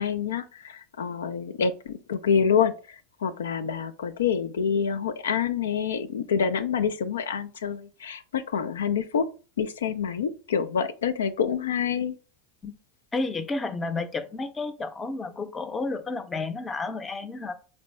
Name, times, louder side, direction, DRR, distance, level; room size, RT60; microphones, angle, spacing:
voice 1, 0.0-9.3 9.6-12.1, left 7 dB, 85° left, 0.3 m, -27 dB
voice 2, 13.1-17.5, left 3 dB, 20° left, 0.6 m, -31 dB
4.2 x 2.6 x 3.1 m
hypercardioid pair, 90°, 0 cm